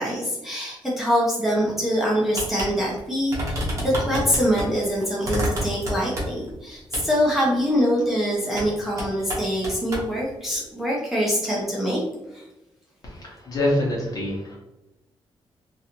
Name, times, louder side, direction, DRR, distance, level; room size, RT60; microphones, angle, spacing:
voice 1, 0.0-12.0 12.3-12.4, equal, 5° right, -5 dB, 0.7 m, -24 dB
sound 1, 2.3-2.7 3.0-3.1 3.3-4.7 5.2-6.5 6.9-7.1 8.5-8.7 9.0-10.1, equal, 35° right, 1.0 m, -28 dB
voice 2, 13.5-14.6, left 1 dB, 40° left, -3 dB, 1.1 m, -24 dB
3.1 x 2.6 x 2.9 m, 0.97 s
wide cardioid pair, 155°, 9 cm